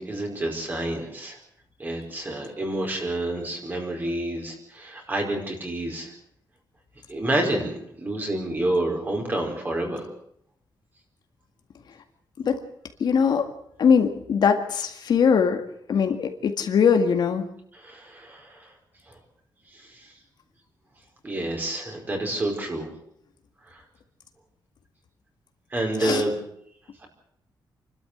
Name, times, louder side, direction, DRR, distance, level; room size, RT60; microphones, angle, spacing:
voice 1, 0.0-1.4 1.8-6.1 7.1-10.1 17.7-18.7 19.1-19.2 19.7-20.1 21.2-22.9 23.7-23.8 25.7-26.3 27.0-27.1, right 1 dB, 25° right, 2 dB, 4.8 m, -29 dB
voice 2, 13.0-13.5 13.8-15.6 15.9-17.5 26.0-26.2, left 6 dB, 60° left, 6 dB, 2.0 m, -21 dB
28.5 x 12.5 x 8.1 m, 0.70 s
wide cardioid pair, 170°, 8 cm